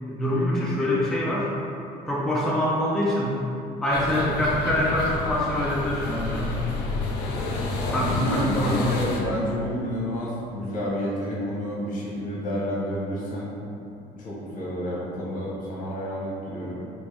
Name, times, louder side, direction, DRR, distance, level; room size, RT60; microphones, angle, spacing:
voice 1, 0.1-1.5 2.1-3.3 3.8-6.6 7.9-8.9, left 1 dB, ahead, -7 dB, 0.5 m, -25 dB
sound 1, 3.9-9.2, left 3 dB, 75° left, 0.5 m, -30 dB
voice 2, 7.8-13.8 14.2-16.8, equal, 50° left, -6 dB, 1.0 m, -29 dB
3.4 x 2.6 x 3.1 m, 2.8 s
cardioid pair, 110°, 17 cm